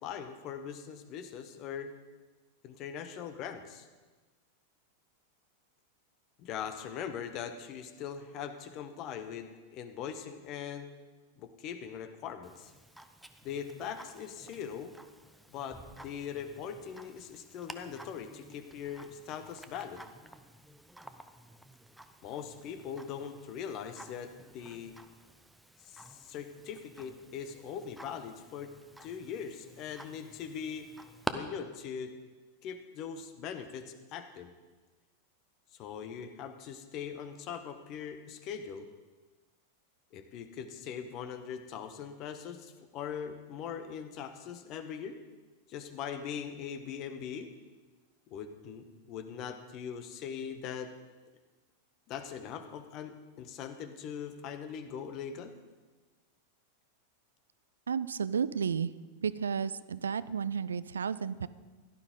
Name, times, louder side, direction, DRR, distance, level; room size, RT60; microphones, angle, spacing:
voice 1, 0.0-1.9 2.6-3.9 6.4-10.9 11.4-12.7 13.4-14.9 15.5-20.1 22.2-24.9 25.8-28.7 29.0-30.9 31.3-32.1 32.6-34.5 35.7-38.9 40.1-45.2 45.7-47.5 48.3-50.9 52.1-55.5, left 7 dB, 40° left, 9 dB, 1.1 m, -41 dB
Tick-tock, 12.4-31.3, right 1 dB, ahead, 0.8 m, -49 dB
voice 2, 57.9-58.9 59.2-61.5, right 6 dB, 70° right, 16 dB, 0.4 m, -32 dB
16.0 x 12.0 x 3.9 m, 1.3 s
figure-of-eight pair, 90°, 0 cm